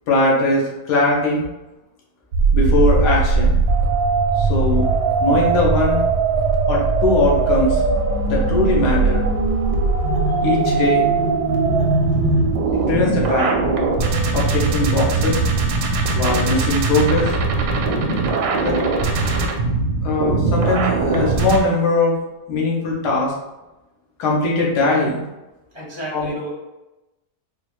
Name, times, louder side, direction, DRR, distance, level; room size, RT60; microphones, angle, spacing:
voice 1, 0.1-1.4 2.5-3.6 4.4-4.9 5.2-6.0 6.7-7.8 8.3-9.3 10.4-11.0 12.7-13.5 14.3-15.4 16.1-17.3 18.6-18.8 20.0-22.2 22.5-23.3 24.2-25.2 26.1-26.3, left 2 dB, 80° left, -3 dB, 1.4 m, -20 dB
sound 1, 2.3-21.6, right 4 dB, 85° right, 1.1 m, -19 dB
voice 2, 4.9-5.3 25.7-26.5, right 1 dB, 25° left, -7 dB, 0.6 m, -33 dB
4.2 x 2.1 x 3.0 m, 1.0 s
omnidirectional pair, 1.7 m